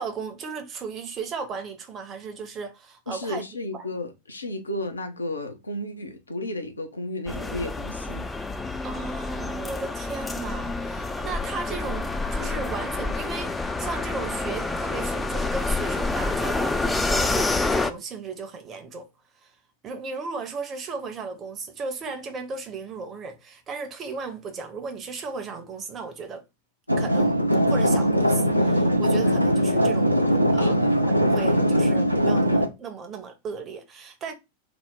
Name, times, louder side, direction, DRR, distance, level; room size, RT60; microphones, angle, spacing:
voice 1, 0.0-3.4 3.8-3.9 8.8-19.1 19.4-19.5 19.8-26.4 27.0-27.4 27.7-30.1 30.5-30.8 31.1-34.3, right 4 dB, 25° right, 0.7 m, -35 dB
voice 2, 3.1-8.3 30.6-31.0, left 1 dB, 75° left, 0.7 m, -33 dB
sound 1, 7.3-17.9, left 3 dB, 10° left, 0.4 m, -28 dB
sound 2, 26.9-32.7, equal, 90° right, 0.5 m, -21 dB
2.9 x 2.0 x 3.7 m
figure-of-eight pair, 90°, 0 cm